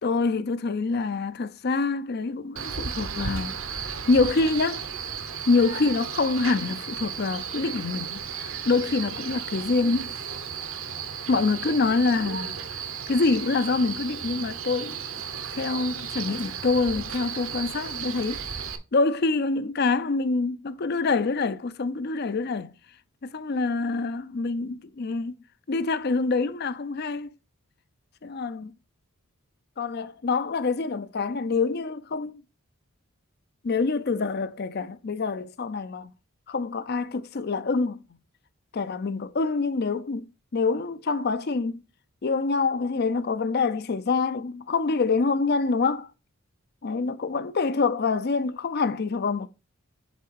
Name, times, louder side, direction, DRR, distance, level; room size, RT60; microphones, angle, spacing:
voice 1, 0.0-4.8 5.5-10.1 11.3-12.8 13.1-15.0 15.6-18.6 18.9-22.7 23.2-25.4 25.7-27.3 28.2-28.7 29.8-32.4 33.6-36.1 36.5-38.0 38.7-41.8 42.2-46.1 46.8-49.5, left 4 dB, 45° left, 0.5 m, -26 dB
Male speech man speaking, 2.6-18.8, right 7 dB, 70° right, 0.9 m, -34 dB
8.1 x 3.5 x 4.6 m
head